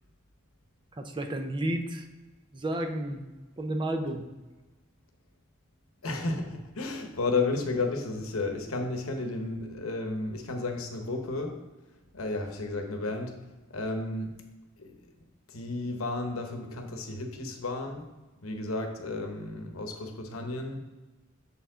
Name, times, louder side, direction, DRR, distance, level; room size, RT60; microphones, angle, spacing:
voice 1, 1.0-2.0 2.5-3.2 3.6-4.3, right 1 dB, 25° right, 5 dB, 0.5 m, -31 dB
voice 2, 6.0-11.6 12.1-13.4 13.7-14.4 14.8-15.1 15.5-18.0 18.4-20.8, left 3 dB, 80° left, 4 dB, 0.9 m, -32 dB
7.0 x 4.5 x 3.8 m, 1.2 s
head